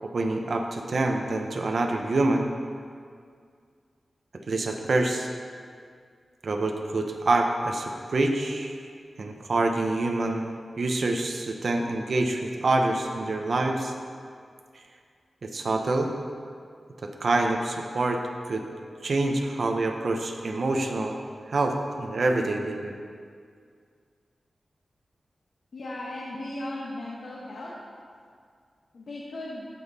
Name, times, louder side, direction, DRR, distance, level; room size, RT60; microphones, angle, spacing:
voice 1, 0.0-2.5 4.5-5.3 6.4-8.8 9.2-13.9 15.4-16.1 17.0-18.6 19.0-21.1 21.5-23.0, right 2 dB, 60° right, 3 dB, 0.8 m, -26 dB
voice 2, 25.7-27.7 28.9-29.7, left 1 dB, 75° left, -5 dB, 1.3 m, -36 dB
14.5 x 5.4 x 4.1 m, 2.1 s
wide cardioid pair, 105°, 0 cm